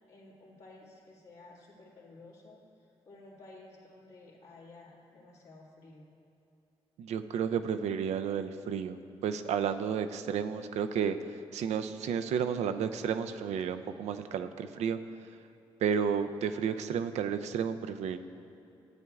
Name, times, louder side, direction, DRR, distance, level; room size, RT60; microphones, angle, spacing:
voice 1, 0.1-6.1, left 2 dB, 80° left, -6 dB, 1.9 m, -54 dB
voice 2, 7.0-15.0 15.8-18.2, right 7 dB, 80° right, 9 dB, 0.4 m, -32 dB
12.5 x 8.0 x 2.3 m, 2.8 s
supercardioid pair, 60°, 11 cm